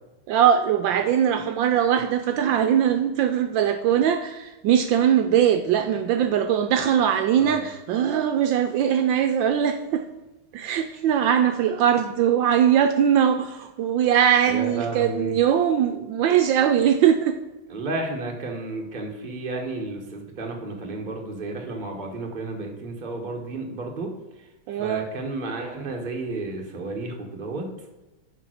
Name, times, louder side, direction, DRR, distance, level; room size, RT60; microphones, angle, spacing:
voice 1, 0.3-10.1 10.5-17.4 24.7-25.1, right 9 dB, 75° right, 7 dB, 1.2 m, -21 dB
voice 2, 14.5-15.3 17.7-24.1 24.7-27.7, right 2 dB, 25° right, 2 dB, 1.2 m, -32 dB
7.0 x 5.4 x 6.3 m, 1.0 s
omnidirectional pair, 2.2 m